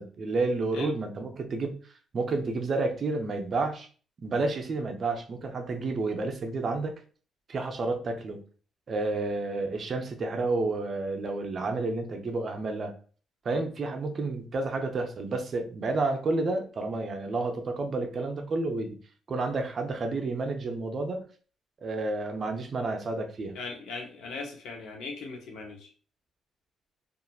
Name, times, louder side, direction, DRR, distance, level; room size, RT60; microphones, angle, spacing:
voice 1, 0.0-1.7 2.1-3.9 4.2-6.9 7.5-8.4 8.9-12.9 13.4-19.0 19.3-21.2 21.8-23.6, right 3 dB, 45° right, 4 dB, 0.5 m, -30 dB
voice 2, 23.5-25.9, left 4 dB, 85° left, 2 dB, 0.7 m, -39 dB
2.8 x 2.4 x 2.3 m, 0.41 s
cardioid pair, 90°, 0 cm